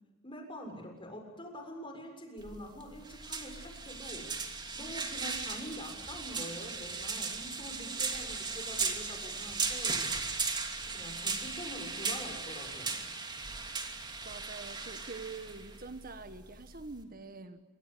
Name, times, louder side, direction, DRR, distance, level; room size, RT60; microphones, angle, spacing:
voice 1, 0.2-4.3 4.7-10.3 10.9-13.0, equal, 25° left, 3 dB, 6.9 m, -45 dB
sound 1, 2.4-17.0, right 4 dB, 20° right, 2.7 m, -37 dB
voice 2, 14.2-17.6, right 3 dB, 45° right, 10 dB, 1.4 m, -45 dB
26.5 x 24.5 x 8.4 m, 1.2 s
head